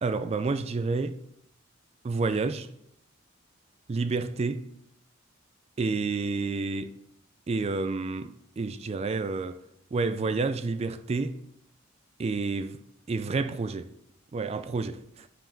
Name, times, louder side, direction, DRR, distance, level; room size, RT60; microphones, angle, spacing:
voice 1, 0.0-1.2 2.0-2.7 3.9-4.7 5.8-7.0 7.5-9.6 9.9-11.4 12.2-12.8 13.1-13.9 14.3-15.3, right 3 dB, 30° right, 0.3 m, -29 dB
5.7 x 5.2 x 5.1 m
head